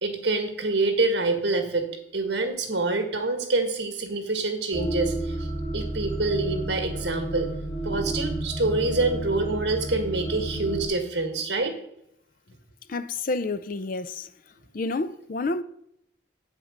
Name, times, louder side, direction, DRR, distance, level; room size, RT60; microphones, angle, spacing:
voice 1, 0.0-5.5 5.7-7.5 7.8-11.7, right 3 dB, 60° right, 1.8 m, -26 dB
sound 1, 4.7-10.9, right 1 dB, 20° left, 3.9 m, -31 dB
voice 2, 12.9-14.3 14.7-15.6, left 3 dB, 45° left, 0.5 m, -29 dB
8.4 x 8.0 x 6.6 m
head